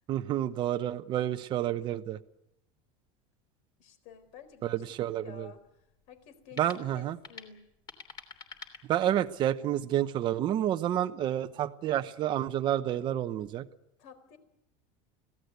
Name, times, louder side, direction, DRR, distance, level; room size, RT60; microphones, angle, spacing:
voice 1, 0.1-2.2 4.6-5.5 6.6-7.2 8.9-13.6, right 11 dB, 30° right, 9 dB, 0.9 m, -29 dB
voice 2, 3.8-5.7 6.1-7.6 14.0-14.4, left 7 dB, 55° left, 10 dB, 4.2 m, -52 dB
sound 1, 4.1-9.5, left 6 dB, 30° left, 3.2 m, -51 dB
25.5 x 17.5 x 8.2 m, 0.85 s
cardioid pair, 165°, 15 cm